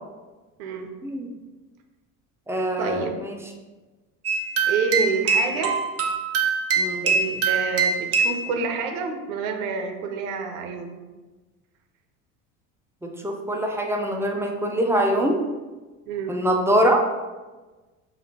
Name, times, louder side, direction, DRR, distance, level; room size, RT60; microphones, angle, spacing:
voice 1, 0.6-0.9 2.8-3.2 4.7-5.8 7.0-11.0 16.1-16.4, right 5 dB, 75° right, 5 dB, 0.7 m, -28 dB
voice 2, 2.5-3.4 6.8-7.0 13.0-15.4 16.3-17.0, right 1 dB, 5° right, 1 dB, 0.5 m, -23 dB
sound 1, 4.2-8.5, right 5 dB, 35° right, 0.8 m, -23 dB
4.9 x 2.7 x 2.8 m, 1.2 s
hypercardioid pair, 80°, 42 cm